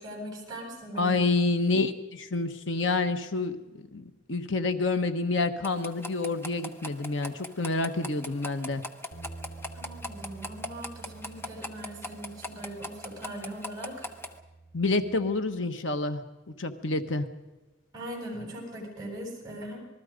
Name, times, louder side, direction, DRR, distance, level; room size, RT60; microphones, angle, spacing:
voice 1, 0.0-1.2 9.7-14.1 17.9-19.8, right 1 dB, 20° right, 0 dB, 7.9 m, -40 dB
voice 2, 1.0-8.8 14.7-16.2 16.6-17.3, left 3 dB, 75° left, 8 dB, 1.3 m, -28 dB
sound 1, 5.6-14.4, left 1 dB, 10° left, 1.2 m, -41 dB
sound 2, 9.1-15.4, right 2 dB, 55° left, 5.5 m, -49 dB
27.0 x 20.5 x 5.2 m, 1.1 s
head